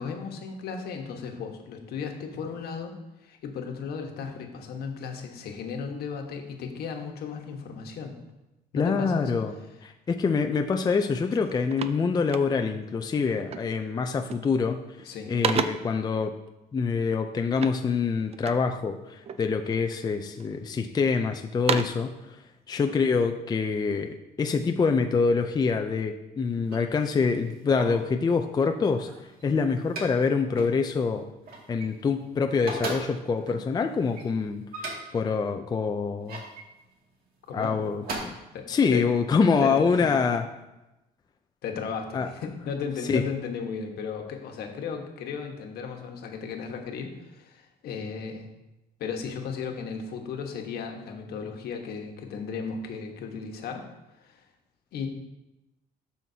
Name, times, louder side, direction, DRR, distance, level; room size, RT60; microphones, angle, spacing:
voice 1, 0.0-3.0 3.2-8.2 8.7-9.4 15.0-15.3 37.5-37.8 38.5-39.1 39.6-40.1 41.6-48.5 49.0-53.9 54.2-54.4 54.9-55.1, left 6 dB, 70° left, 3 dB, 1.3 m, -35 dB
voice 2, 8.7-9.5 10.1-14.8 15.3-16.3 16.7-22.1 22.7-29.1 29.4-31.3 31.7-34.9 35.1-36.4 37.5-38.4 38.7-40.4 42.1-42.3 43.1-43.2, left 5 dB, 25° left, 6 dB, 0.5 m, -25 dB
sound 1, 10.9-11.0 11.3-12.9 13.5-13.8 14.2-14.7 15.0-16.0 17.5-18.7 19.2-19.9 20.4-21.1 21.4-22.1, right 7 dB, 35° right, 0.5 m, -33 dB
sound 2, 26.5-28.1 28.7-30.3 30.6-30.8 31.1-32.2 32.5-35.3 35.9-36.7 37.5-38.2, right 2 dB, 60° right, 2.3 m, -39 dB
12.0 x 5.7 x 2.8 m, 0.98 s
cardioid pair, 110°, 17 cm